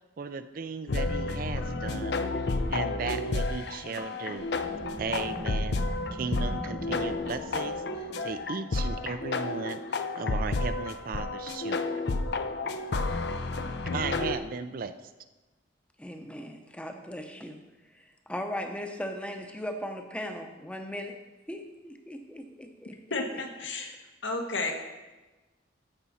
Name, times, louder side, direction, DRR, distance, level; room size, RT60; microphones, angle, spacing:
voice 1, 0.2-2.2 2.7-4.5 5.0-5.8 6.1-11.8 13.9-15.1, right 5 dB, 50° right, 10 dB, 0.4 m, -36 dB
sound 1, 0.9-14.3, left 3 dB, 60° left, 0.6 m, -31 dB
sound 2, 4.5-9.7, right 1 dB, 35° right, 1.1 m, -42 dB
voice 2, 16.0-17.6 18.3-21.1 21.5-22.9, equal, 5° left, 4 dB, 0.8 m, -38 dB
voice 3, 23.1-23.9 24.2-24.7, left 3 dB, 80° left, 3 dB, 1.5 m, -32 dB
14.0 x 6.1 x 4.1 m, 1.2 s
head